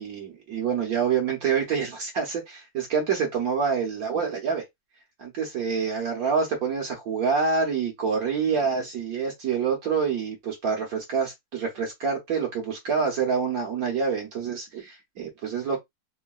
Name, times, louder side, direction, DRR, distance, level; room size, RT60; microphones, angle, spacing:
voice 1, 0.0-4.6 5.2-15.8, right 6 dB, 65° right, 1.2 m, -27 dB
3.8 x 2.1 x 2.3 m
omnidirectional pair, 1.7 m